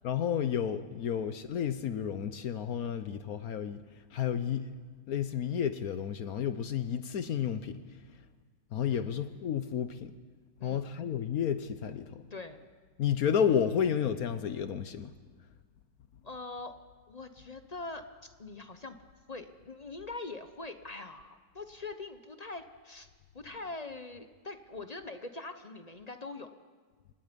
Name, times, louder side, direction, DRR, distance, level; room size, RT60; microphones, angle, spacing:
voice 1, 0.0-3.8 4.1-4.7 5.1-7.8 8.7-10.1 10.6-12.3 13.0-15.1, left 8 dB, 65° left, 11 dB, 1.2 m, -31 dB
voice 2, 16.2-16.8 17.1-19.0 19.3-23.1 23.3-26.5, left 3 dB, 35° left, 8 dB, 0.7 m, -43 dB
29.5 x 18.0 x 5.2 m, 1.5 s
omnidirectional pair, 1.8 m